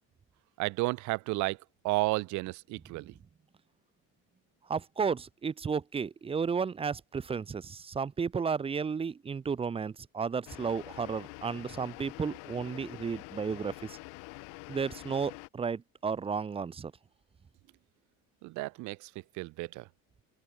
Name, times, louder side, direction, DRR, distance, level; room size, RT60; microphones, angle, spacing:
voice 1, 0.6-1.6 1.8-3.1 18.4-19.1 19.4-19.8, right 22 dB, 70° right, 1.6 m, -32 dB
voice 2, 4.7-13.7 14.7-16.9, right 5 dB, 20° right, 0.9 m, -33 dB
sound 1, 10.5-15.5, left 30 dB, 85° left, 5.3 m, -46 dB
open air
cardioid pair, 145°, 31 cm